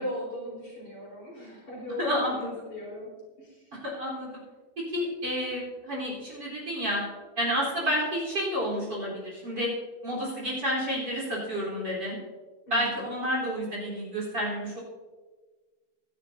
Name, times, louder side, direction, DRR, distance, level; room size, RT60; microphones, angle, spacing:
voice 1, 0.0-3.1 3.4-3.6 12.7-13.1, left 1 dB, 50° left, -5 dB, 5.8 m, -38 dB
voice 2, 2.0-2.6 3.8-4.3 4.9-7.0 7.4-9.7 10.0-12.2 12.7-14.8, equal, 30° right, -3 dB, 4.5 m, -30 dB
23.0 x 12.0 x 2.8 m, 1.4 s
omnidirectional pair, 4.1 m